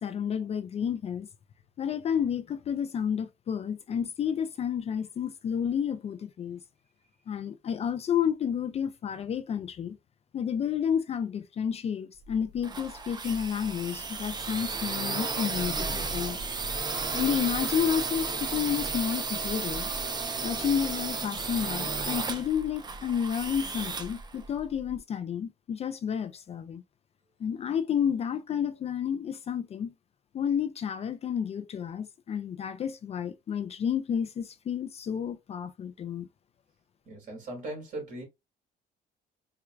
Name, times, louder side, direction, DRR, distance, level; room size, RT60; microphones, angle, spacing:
voice 1, 0.0-1.3 1.8-6.6 7.3-10.0 10.3-16.4 17.1-19.9 20.4-26.8 27.4-29.9 30.3-36.3, left 8 dB, 40° left, 0.4 m, -31 dB
sound 1, 12.2-25.0, right 4 dB, 25° right, 0.6 m, -33 dB
voice 2, 37.1-38.2, right 2 dB, 50° right, 2.4 m, -38 dB
4.4 x 2.4 x 2.3 m
cardioid pair, 110°, 17 cm